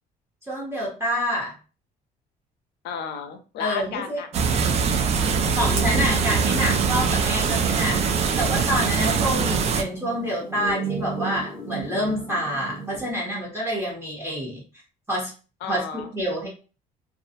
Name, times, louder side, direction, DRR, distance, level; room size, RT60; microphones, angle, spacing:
voice 1, 0.5-1.6 3.6-4.2 5.5-8.0 8.4-14.6 15.1-15.3 15.7-16.5, equal, 15° right, -5 dB, 1.0 m, -27 dB
voice 2, 2.8-4.6 15.6-16.1, left 7 dB, 80° left, 8 dB, 0.5 m, -33 dB
sound 1, 4.3-9.8, right 5 dB, 40° right, 0.3 m, -22 dB
sound 2, 5.6-13.1, right 5 dB, 5° left, 0.7 m, -33 dB
Fire, 5.7-6.9, right 3 dB, 55° right, 0.8 m, -39 dB
2.3 x 2.0 x 2.7 m, 0.36 s
cardioid pair, 110°, 17 cm